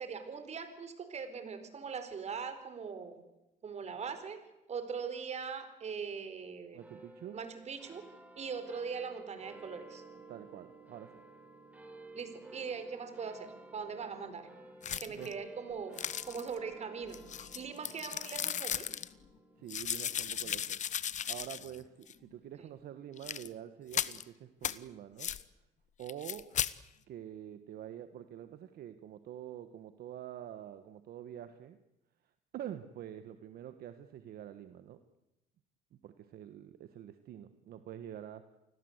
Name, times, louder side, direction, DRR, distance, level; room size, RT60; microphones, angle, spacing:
voice 1, 0.0-3.2 3.6-4.4 4.7-6.9 7.3-8.1 8.4-10.0 12.1-14.5 15.0-18.9, right 6 dB, 40° right, 10 dB, 4.4 m, -41 dB
voice 2, 6.7-7.4 10.3-11.1 15.2-15.3 19.6-25.3 26.0-26.5 27.1-31.8 32.2-35.0 35.9-38.4, right 10 dB, 65° right, 10 dB, 1.5 m, -47 dB
sound 1, 6.8-23.5, right 2 dB, 10° right, 4.5 m, -54 dB
sound 2, 14.8-15.3 16.0-16.6 17.1-19.1 19.7-21.8 22.1-22.2 23.2-23.5 23.9-24.2 24.6-24.8 25.2-25.4 26.1-26.7, left 9 dB, 45° left, 1.1 m, -36 dB
29.0 x 21.0 x 8.1 m, 0.94 s
cardioid pair, 110°, 17 cm